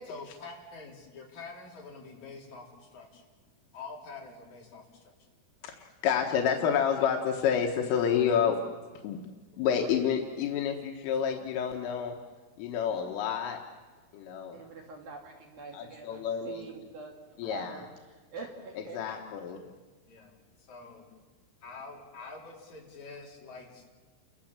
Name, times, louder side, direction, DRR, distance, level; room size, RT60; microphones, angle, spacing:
voice 1, 0.1-3.3 3.7-5.1 9.2-9.3 18.4-18.5 20.1-21.1 21.6-23.9, left 4 dB, 40° left, -2 dB, 5.0 m, -46 dB
voice 2, 5.6-8.6 9.0-9.2 9.6-12.2 12.6-13.6 14.1-14.6 15.7-16.6 17.4-17.7 18.9-19.6, left 8 dB, 85° left, 2 dB, 4.0 m, -29 dB
voice 3, 6.6-7.0 14.5-19.0, right 4 dB, 55° right, 1 dB, 3.6 m, -45 dB
30.0 x 23.0 x 7.5 m, 1.3 s
omnidirectional pair, 5.7 m